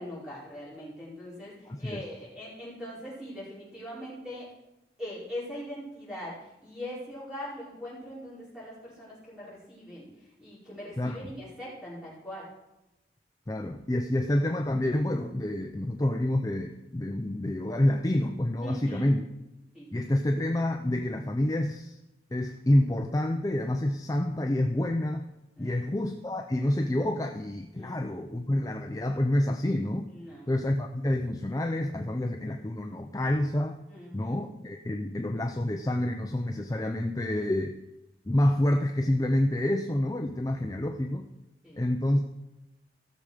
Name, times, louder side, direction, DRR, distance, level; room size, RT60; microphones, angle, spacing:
voice 1, 0.0-1.5 1.8-4.5 5.0-10.1 10.4-12.5 18.6-19.2 19.7-19.9 25.6-25.8 27.7-28.3 30.1-30.5 33.9-34.4 41.6-41.8, equal, 5° right, -9 dB, 4.6 m, -41 dB
voice 2, 1.7-2.1 11.0-11.3 13.5-19.2 19.9-22.0 22.3-25.3 25.6-30.1 30.5-33.8 34.1-37.8 38.3-41.3 41.8-42.2, left 1 dB, 20° left, 4 dB, 0.4 m, -28 dB
15.5 x 6.5 x 4.9 m, 0.96 s
head